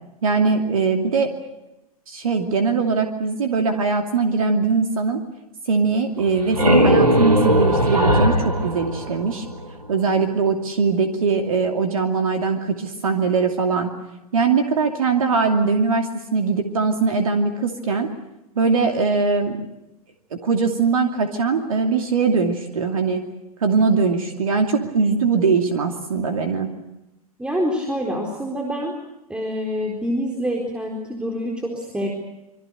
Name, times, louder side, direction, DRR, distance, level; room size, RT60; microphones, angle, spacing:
voice 1, 0.2-1.3 2.1-5.2 5.7-9.5 9.9-13.9 14.3-18.1 18.6-19.7 20.4-23.2 23.6-26.7, right 4 dB, 65° right, 5 dB, 2.7 m, -21 dB
sound 1, 6.2-9.9, equal, 85° right, 3.1 m, -19 dB
voice 2, 27.4-28.9 29.3-32.1, equal, 5° right, 0 dB, 4.3 m, -26 dB
27.5 x 24.5 x 6.8 m, 0.92 s
figure-of-eight pair, 100°, 19 cm